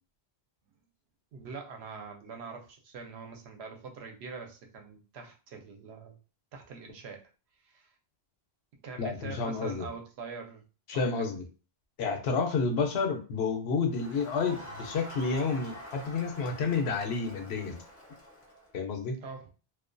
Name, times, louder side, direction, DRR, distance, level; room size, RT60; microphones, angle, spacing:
voice 1, 1.3-6.2 6.5-7.3 7.6-7.9 8.8-10.6 10.9-11.3 12.3-12.4 19.2-19.5, right 4 dB, 90° right, 3 dB, 0.8 m, -44 dB
voice 2, 9.0-9.9 10.9-11.4 12.0-17.8 18.7-19.2, left 4 dB, 85° left, 5 dB, 0.9 m, -30 dB
Crowd, 13.9-18.7, equal, 20° left, 0.4 m, -46 dB
2.3 x 2.2 x 2.5 m, 0.34 s
omnidirectional pair, 1.1 m